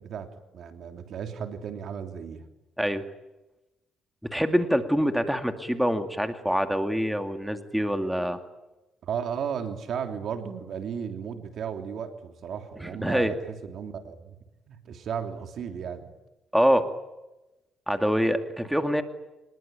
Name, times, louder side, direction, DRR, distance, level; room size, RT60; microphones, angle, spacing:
voice 1, 0.0-2.4 9.0-14.4 14.7-16.1, right 7 dB, 65° right, 6 dB, 3.2 m, -35 dB
voice 2, 4.3-8.4 12.8-13.3 16.5-16.8 17.9-19.0, equal, ahead, 7 dB, 2.4 m, -25 dB
26.0 x 21.0 x 9.2 m, 1.0 s
cardioid pair, 90°, 0 cm